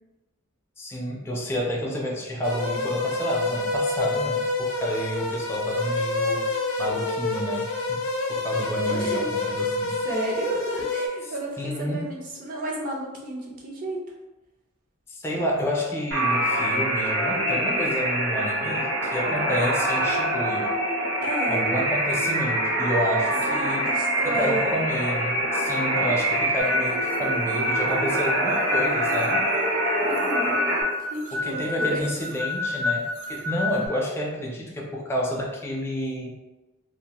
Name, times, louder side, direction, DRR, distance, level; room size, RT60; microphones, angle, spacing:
voice 1, 0.8-10.0 11.2-12.1 15.1-20.7 21.5-23.9 24.2-29.5 31.3-36.4, equal, 10° left, -2 dB, 0.3 m, -30 dB
sound 1, 2.4-11.1, left 3 dB, 80° left, 0.5 m, -27 dB
voice 2, 8.8-9.3 10.0-14.0 21.2-21.6 23.5-24.8 30.1-30.6 31.1-32.0, right 1 dB, 40° right, -2 dB, 0.5 m, -32 dB
sound 2, 16.1-30.8, right 1 dB, 65° right, 0.8 m, -25 dB
sound 3, 26.6-33.9, left 3 dB, 90° right, 0.4 m, -30 dB
2.3 x 2.2 x 2.8 m, 1.1 s
head